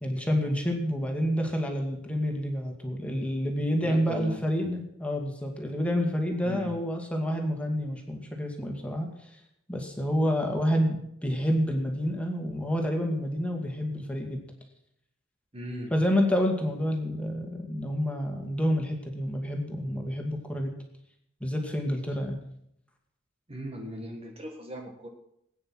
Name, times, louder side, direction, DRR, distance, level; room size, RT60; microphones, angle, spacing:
voice 1, 0.0-9.4 9.7-14.5 15.9-20.8 21.4-22.4, equal, 5° left, 2 dB, 2.3 m, -28 dB
voice 2, 3.8-4.4 6.4-6.7 15.5-15.9 23.5-25.1, equal, 30° right, 2 dB, 1.7 m, -38 dB
19.0 x 9.5 x 6.2 m, 0.75 s
head